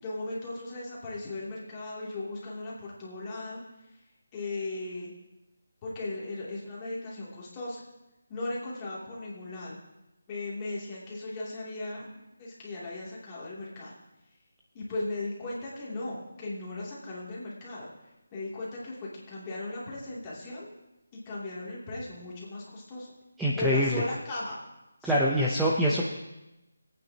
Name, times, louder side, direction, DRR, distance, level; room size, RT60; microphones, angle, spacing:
voice 1, 0.0-3.6 4.3-5.1 5.8-7.8 8.3-9.8 10.3-13.9 14.7-17.9 18.3-20.7 21.1-23.1 23.6-24.6 25.0-25.3, left 2 dB, 20° left, -6 dB, 2.8 m, -37 dB
voice 2, 23.4-24.0 25.0-26.1, equal, 5° right, -5 dB, 0.8 m, -25 dB
25.5 x 9.1 x 2.9 m, 0.96 s
figure-of-eight pair, 165°, 0 cm